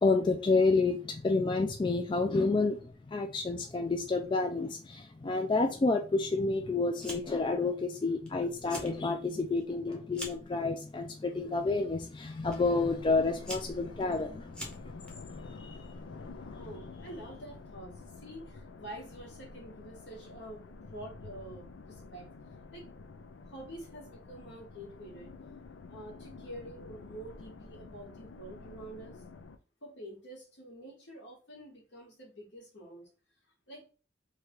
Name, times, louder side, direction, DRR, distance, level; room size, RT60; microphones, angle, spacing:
voice 1, 0.0-14.9 15.4-16.6, left 3 dB, 25° left, 4 dB, 0.3 m, -30 dB
Fire, 7.0-7.5 7.8-8.3 8.6-9.0 9.4-10.5 11.3-11.6 12.5-12.6 13.2-15.1, equal, 5° left, 0.8 m, -43 dB
sound 1, 12.4-29.6, left 3 dB, 90° left, 0.5 m, -49 dB
voice 2, 16.5-22.3 22.7-22.9 23.5-25.3 25.9-29.2 29.8-33.1 33.7-33.9, right 1 dB, 75° left, -1 dB, 1.5 m, -47 dB
3.2 x 2.4 x 4.4 m, 0.35 s
head